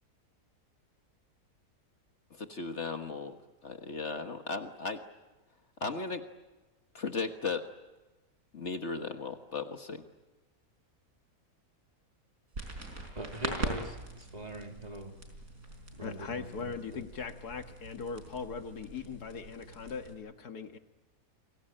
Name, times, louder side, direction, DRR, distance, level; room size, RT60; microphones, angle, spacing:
voice 1, 2.3-3.4 3.6-5.0 5.8-6.2 6.9-7.7 8.5-10.0, left 4 dB, 50° left, 6 dB, 1.7 m, -36 dB
sound 1, 12.5-20.1, right 2 dB, 65° right, 5.4 m, -42 dB
voice 2, 13.1-15.1 15.9-17.0, right 1 dB, 25° right, 2 dB, 3.0 m, -42 dB
voice 3, 16.0-20.8, left 5 dB, 80° left, 6 dB, 2.1 m, -40 dB
29.5 x 22.0 x 8.9 m, 1.1 s
omnidirectional pair, 1.6 m